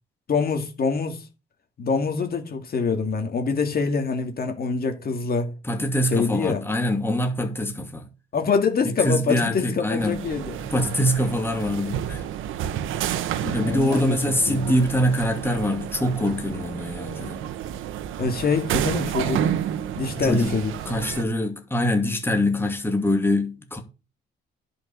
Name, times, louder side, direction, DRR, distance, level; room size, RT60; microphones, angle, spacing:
voice 1, 0.3-1.3 1.8-5.6 6.1-6.6 8.3-10.6 13.4-14.7 18.2-19.5 20.0-20.7, left 5 dB, 50° left, 2.5 m, -25 dB
voice 2, 5.6-8.1 8.8-10.2 10.6-12.3 13.5-17.4 20.2-20.6 20.8-23.8, left 1 dB, 10° left, 2.6 m, -24 dB
sound 1, 10.0-21.2, right 10 dB, 85° right, 1.2 m, -30 dB
10.5 x 5.5 x 6.9 m
cardioid pair, 90°, 20 cm